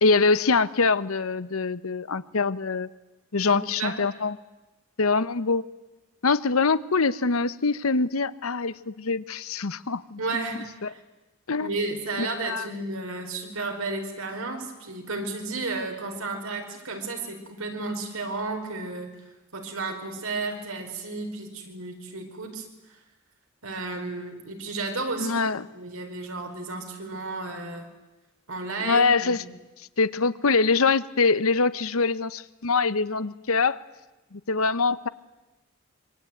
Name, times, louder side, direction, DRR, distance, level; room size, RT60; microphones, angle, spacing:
voice 1, 0.0-2.9 3.3-4.4 5.0-5.7 6.2-10.2 10.8-10.9 11.5-11.7 12.2-12.7 25.2-25.6 28.8-29.4 30.0-33.8 34.3-35.1, left 4 dB, 85° left, 15 dB, 1.0 m, -24 dB
voice 2, 3.5-4.0 10.2-11.0 11.6-19.1 19.5-22.7 23.6-25.4 25.7-27.9 28.5-29.4, right 3 dB, 85° right, 4 dB, 5.0 m, -32 dB
26.0 x 24.5 x 9.3 m, 1.1 s
head